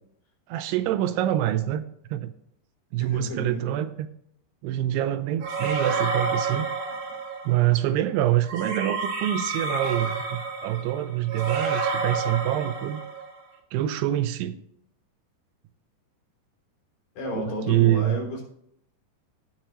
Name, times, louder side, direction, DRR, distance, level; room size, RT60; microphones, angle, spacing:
voice 1, 0.5-1.8 2.1-2.3 2.9-4.1 4.6-6.7 7.5-13.0 13.7-14.5 17.7-18.2, right 13 dB, 85° right, 12 dB, 2.6 m, -25 dB
voice 2, 3.0-3.7 17.2-18.4, equal, 55° left, 0 dB, 4.7 m, -32 dB
sound 1, 5.4-7.6 8.5-13.4, right 4 dB, 60° right, 2.5 m, -29 dB
16.0 x 6.7 x 3.1 m, 0.71 s
omnidirectional pair, 4.8 m